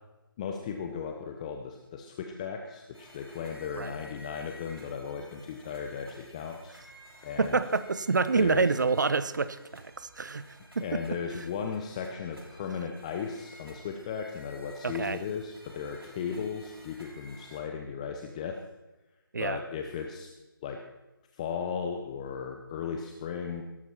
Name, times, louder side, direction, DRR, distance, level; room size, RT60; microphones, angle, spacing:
voice 1, 0.4-6.8 7.2-7.6 8.3-8.7 10.8-18.6 19.4-20.3 20.6-20.8 21.3-23.6, left 6 dB, 15° left, 4 dB, 0.7 m, -36 dB
sound 1, 2.9-17.6, equal, 80° right, 6.5 m, -53 dB
voice 2, 7.4-10.4 10.8-11.0 14.8-15.2 19.3-19.6, right 4 dB, 50° right, 14 dB, 0.8 m, -27 dB
17.0 x 13.5 x 4.3 m, 1.1 s
figure-of-eight pair, 150°, 12 cm